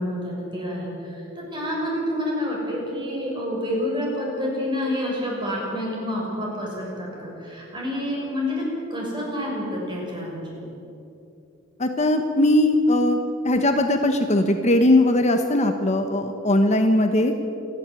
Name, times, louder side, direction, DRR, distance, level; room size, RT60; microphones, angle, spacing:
voice 1, 0.0-10.6, left 1 dB, 25° right, -3 dB, 6.7 m, -28 dB
voice 2, 11.8-13.2 13.4-17.3, left 1 dB, 35° left, 6 dB, 1.1 m, -19 dB
27.0 x 10.5 x 9.1 m, 2.9 s
head